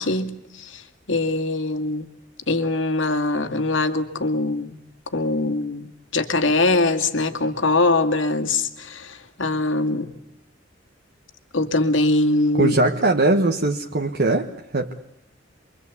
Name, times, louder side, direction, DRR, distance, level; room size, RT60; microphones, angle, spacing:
voice 1, 0.0-2.1 2.5-4.8 5.1-10.1 11.5-12.8, left 2 dB, 90° left, 5 dB, 2.2 m, -22 dB
voice 2, 12.6-14.9, right 2 dB, 60° right, 3 dB, 1.3 m, -20 dB
28.5 x 23.5 x 8.4 m, 0.77 s
head